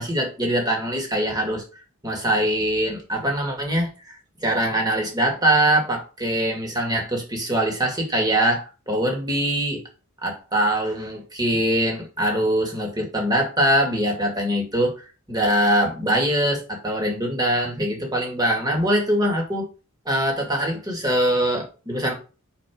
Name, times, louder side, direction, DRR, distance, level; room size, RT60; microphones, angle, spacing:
voice 1, 0.0-1.6 2.0-9.8 10.2-19.7 20.1-22.1, right 1 dB, 20° right, 1 dB, 2.3 m, -23 dB
5.5 x 4.6 x 6.2 m, 0.33 s
head